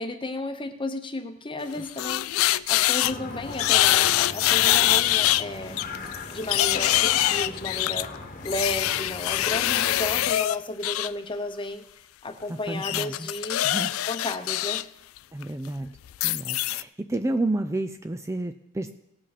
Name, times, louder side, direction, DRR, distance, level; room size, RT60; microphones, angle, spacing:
voice 1, 0.0-2.3 2.7-5.7 6.3-8.1 8.4-11.8 12.2-13.7 14.1-14.8, left 2 dB, 25° left, 7 dB, 0.9 m, -33 dB
sound 1, 1.6-3.1 3.5-5.4 5.8-11.1 12.8-14.8 15.2-15.4 16.1-16.8, left 15 dB, 80° left, 0.3 m, -24 dB
sound 2, 3.0-10.3, left 2 dB, 40° left, 1.2 m, -39 dB
voice 2, 12.5-13.3 13.6-13.9 15.3-15.9 16.2-18.9, right 2 dB, 15° right, 8 dB, 0.4 m, -30 dB
18.5 x 7.6 x 4.3 m, 0.84 s
head